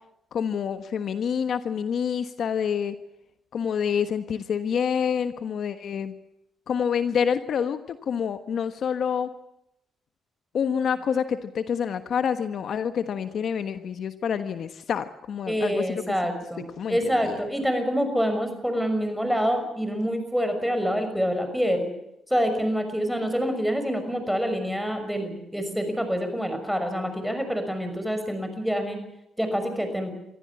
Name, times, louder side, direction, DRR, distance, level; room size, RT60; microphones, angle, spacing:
voice 1, 0.3-3.0 3.5-6.1 6.7-9.3 10.5-16.0 16.8-17.3, left 7 dB, 60° left, 10 dB, 1.3 m, -27 dB
voice 2, 15.5-21.9 22.3-29.0 29.4-30.1, equal, ahead, 7 dB, 6.1 m, -26 dB
24.5 x 15.0 x 9.8 m, 0.84 s
cardioid pair, 90°, 0 cm